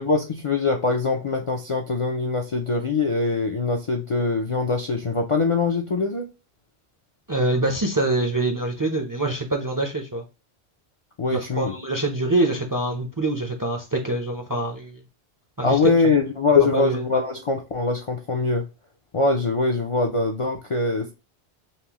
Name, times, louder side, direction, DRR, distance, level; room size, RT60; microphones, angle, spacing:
voice 1, 0.0-6.3 11.2-11.7 15.6-18.7 19.1-21.1, left 4 dB, 45° left, 0.4 m, -23 dB
voice 2, 7.3-10.2 11.3-15.0 15.6-15.9 16.7-17.0, right 2 dB, 25° right, 0.4 m, -25 dB
5.6 x 2.0 x 2.9 m
omnidirectional pair, 1.1 m